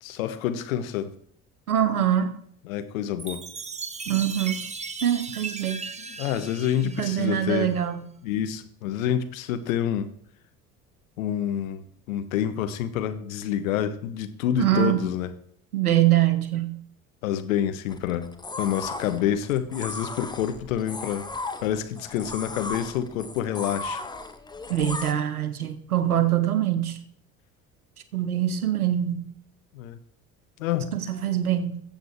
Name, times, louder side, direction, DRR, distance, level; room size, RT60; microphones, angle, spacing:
voice 1, 0.0-1.1 2.7-3.4 6.0-7.7 8.2-10.1 11.2-15.3 17.2-18.3 18.6-21.3 21.6-24.0 29.7-30.0 30.6-30.9, left 10 dB, 65° left, 1.2 m, -28 dB
voice 2, 1.7-2.4 4.1-4.7 5.0-5.8 6.8-8.1 14.6-15.1 15.7-16.8 24.7-27.0 28.1-29.3 30.9-31.8, right 11 dB, 85° right, 1.1 m, -24 dB
Chime, 3.2-7.8, right 4 dB, 15° right, 1.0 m, -37 dB
sound 1, 17.9-25.1, left 3 dB, 10° left, 1.0 m, -36 dB
14.0 x 7.6 x 4.6 m
figure-of-eight pair, 60°, 43 cm